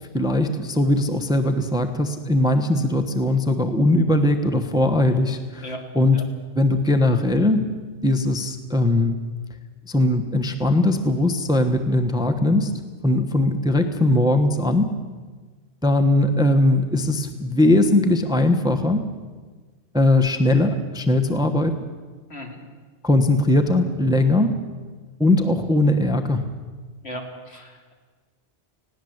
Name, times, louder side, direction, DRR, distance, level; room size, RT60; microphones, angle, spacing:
voice 1, 0.1-7.6 8.0-9.2 9.9-12.7 13.0-14.9 15.8-19.0 19.9-21.7 23.0-24.5 25.2-26.5, left 1 dB, 5° right, 7 dB, 1.1 m, -20 dB
voice 2, 27.0-27.9, equal, 60° left, 2 dB, 3.1 m, -36 dB
20.0 x 17.0 x 8.0 m, 1.4 s
omnidirectional pair, 1.2 m